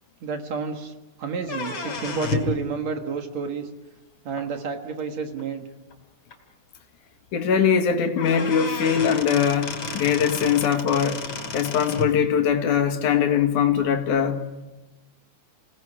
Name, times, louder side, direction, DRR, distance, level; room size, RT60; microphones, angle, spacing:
voice 1, 0.2-3.7 4.3-5.6, right 5 dB, 60° right, 2.7 m, -30 dB
sound 1, 1.4-2.6 4.4-4.5 5.4-5.5 5.9-6.0 6.3-6.4 7.8-7.9 8.2-12.1, left 4 dB, 40° left, 3.9 m, -31 dB
voice 2, 7.3-11.2 11.5-14.4, left 7 dB, 75° left, 3.3 m, -21 dB
29.0 x 18.5 x 10.0 m
omnidirectional pair, 3.6 m